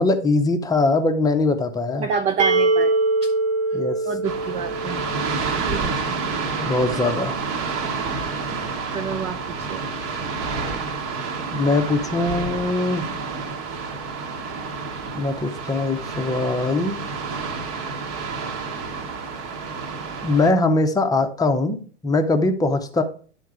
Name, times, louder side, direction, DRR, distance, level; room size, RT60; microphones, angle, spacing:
voice 1, 0.0-2.1 3.7-4.0 6.6-7.4 11.5-13.0 15.1-17.0 20.2-23.0, left 2 dB, 10° left, 6 dB, 0.8 m, -21 dB
voice 2, 2.0-3.0 3.2-3.3 3.7-3.8 4.0-5.0 5.6-6.2 8.9-9.9, right 6 dB, 20° right, 7 dB, 0.3 m, -28 dB
sound 1, 2.4-6.1, right 2 dB, 70° right, 1.2 m, -23 dB
sound 2, 4.2-20.5, right 4 dB, 40° right, 1.2 m, -29 dB
10.0 x 3.9 x 4.9 m, 0.43 s
hypercardioid pair, 105°, 36 cm